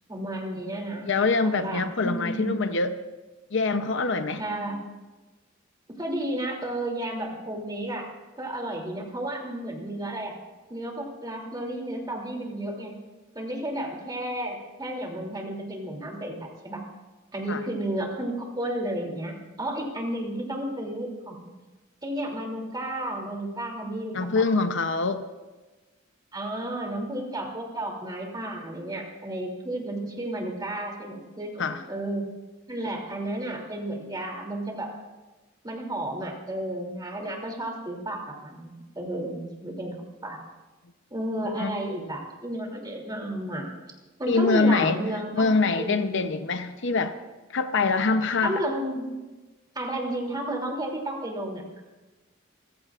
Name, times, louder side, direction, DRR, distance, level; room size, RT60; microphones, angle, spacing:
voice 1, 0.1-1.1 1.4-2.5 4.4-4.8 6.0-8.0 8.4-10.3 10.7-12.9 13.3-16.8 17.3-21.4 22.0-24.4 26.3-32.2 32.7-34.9 35.6-39.9 40.2-40.4 41.1-43.7 44.2-45.5 45.7-46.2 48.4-49.1 49.7-51.8, right 1 dB, 20° right, 1 dB, 2.9 m, -32 dB
voice 2, 1.1-3.0 3.5-4.4 17.5-17.6 24.1-25.2 31.6-31.8 41.6-41.8 44.3-45.0 45.3-47.1 47.5-48.6, left 3 dB, 65° left, 9 dB, 0.8 m, -24 dB
28.0 x 15.5 x 2.5 m, 1.2 s
head